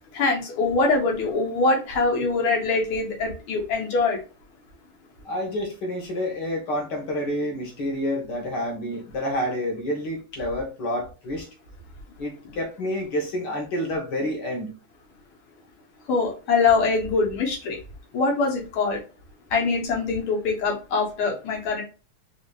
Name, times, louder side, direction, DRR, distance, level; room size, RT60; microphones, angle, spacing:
voice 1, 0.1-4.2 16.1-17.8 18.1-19.0 19.5-21.8, left 3 dB, 85° left, 1 dB, 2.1 m, -23 dB
voice 2, 5.2-11.5 12.2-14.7, left 1 dB, 55° left, 0 dB, 1.7 m, -29 dB
4.8 x 2.7 x 2.3 m, 0.34 s
omnidirectional pair, 2.4 m